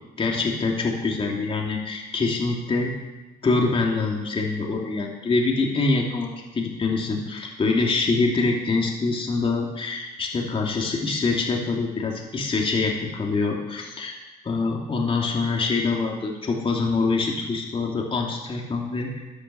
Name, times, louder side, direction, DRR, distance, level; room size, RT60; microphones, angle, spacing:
voice 1, 0.2-2.9 3.4-14.1 14.4-19.2, left 3 dB, 30° left, 0 dB, 2.9 m, -25 dB
12.0 x 10.0 x 7.6 m, 1.1 s
cardioid pair, 110°, 17 cm